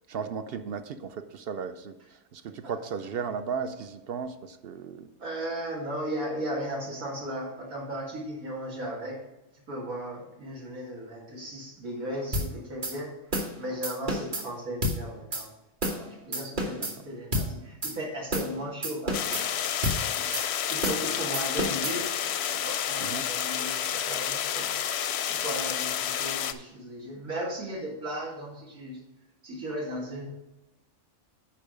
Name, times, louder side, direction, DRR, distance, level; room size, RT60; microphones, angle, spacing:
voice 1, 0.1-1.9 2.3-5.1 16.8-16.9 23.0-23.3, right 6 dB, 55° right, 10 dB, 0.7 m, -35 dB
voice 2, 5.2-9.2 9.7-13.1 13.6-15.5 15.9-22.1 22.5-24.7 25.3-29.0 29.4-30.3, right 1 dB, 85° right, -3 dB, 2.4 m, -36 dB
sound 1, 12.3-12.5 12.8-12.9 13.3-13.5 13.8-14.4 14.8-15.0 15.3-15.4 15.8-16.0 16.3-16.9 17.3-17.5 17.8-17.9 18.3-18.5 18.8-19.4 19.8-20.0 20.3-20.5 20.8-21.0 21.3-22.0, equal, 35° right, 1.5 m, -29 dB
sound 2, 19.1-26.5, left 9 dB, 65° left, 0.7 m, -30 dB
10.0 x 4.7 x 5.1 m, 0.95 s
omnidirectional pair, 1.4 m